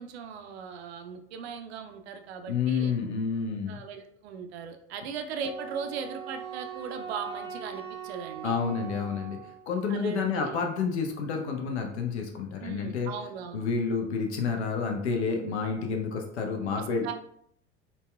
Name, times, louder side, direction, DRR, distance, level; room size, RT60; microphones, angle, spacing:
voice 1, 0.0-2.9 3.5-8.6 9.9-10.6 12.6-13.6 16.7-17.1, right 6 dB, 70° right, 7 dB, 0.5 m, -38 dB
voice 2, 2.5-3.8 8.4-9.4 9.7-13.1 13.5-17.0, left 5 dB, 75° left, 3 dB, 0.6 m, -29 dB
Wind instrument woodwind instrument, 5.4-9.7, right 7 dB, 15° right, 0.6 m, -41 dB
3.9 x 2.2 x 2.2 m, 0.70 s
figure-of-eight pair, 70°, 33 cm